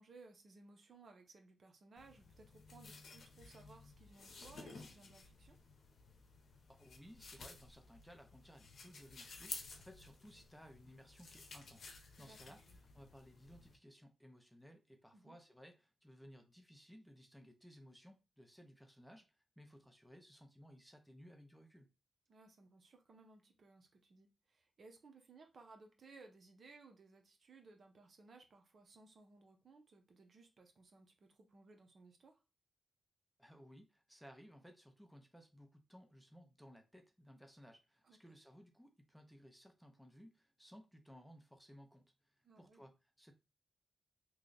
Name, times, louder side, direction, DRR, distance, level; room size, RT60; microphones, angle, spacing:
voice 1, 0.0-5.6 12.2-12.8 15.1-15.3 22.3-32.4 38.0-38.4 42.4-42.9, right 3 dB, 55° right, 0.8 m, -61 dB
sound 1, 2.0-13.8, left 4 dB, 65° left, 0.8 m, -54 dB
voice 2, 6.7-21.9 33.4-43.3, equal, ahead, 0.6 m, -60 dB
3.1 x 2.3 x 3.9 m
cardioid pair, 95°, 0 cm